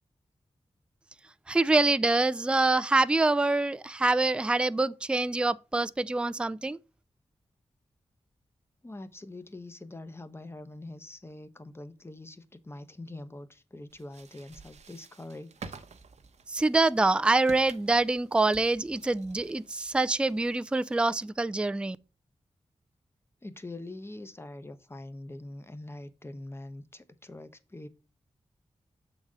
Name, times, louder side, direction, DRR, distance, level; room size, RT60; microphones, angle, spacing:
voice 1, 1.5-6.8 16.5-22.0, right 2 dB, 10° right, 0.3 m, -25 dB
voice 2, 8.8-15.8 23.4-27.9, left 2 dB, 20° left, 0.8 m, -44 dB
sound 1, 13.9-21.2, right 5 dB, 85° right, 0.8 m, -50 dB
7.2 x 4.0 x 4.9 m
wide cardioid pair, 100°, 11 cm